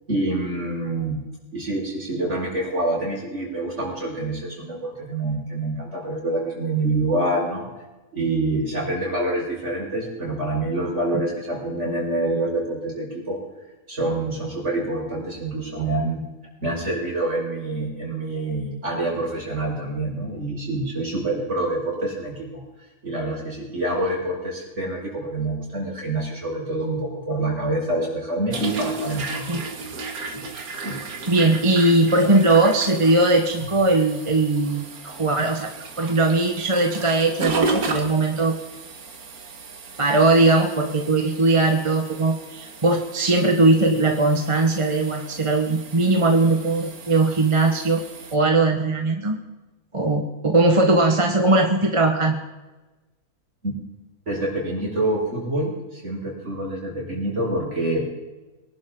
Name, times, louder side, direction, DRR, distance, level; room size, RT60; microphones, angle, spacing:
voice 1, 0.1-1.2 1.5-7.7 8.1-13.4 13.9-16.2 16.6-22.6 23.0-29.6 30.3-30.4 30.8-31.0 53.6-53.7 54.3-58.0, right 2 dB, 50° right, -4 dB, 6.4 m, -26 dB
sound 1, 28.5-48.4, right 3 dB, 80° right, 2.0 m, -34 dB
voice 2, 31.3-35.7 36.0-38.5 40.0-48.0 48.3-49.3 49.9-52.4, right 2 dB, 25° right, 3 dB, 1.3 m, -19 dB
24.0 x 11.5 x 3.9 m, 1.1 s
omnidirectional pair, 1.5 m